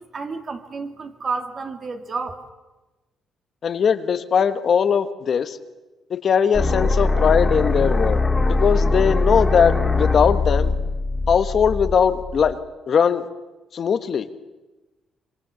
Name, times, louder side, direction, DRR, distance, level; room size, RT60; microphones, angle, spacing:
voice 1, 0.0-2.4, right 4 dB, 45° right, 5 dB, 2.6 m, -30 dB
voice 2, 3.6-5.6 6.1-8.2 8.5-10.7 11.3-12.6 12.9-13.3 13.7-14.3, left 7 dB, 55° left, 10 dB, 1.3 m, -20 dB
sound 1, 6.5-12.5, left 3 dB, 15° left, 2.8 m, -21 dB
26.0 x 24.0 x 7.1 m, 1.1 s
cardioid pair, 90°, 0 cm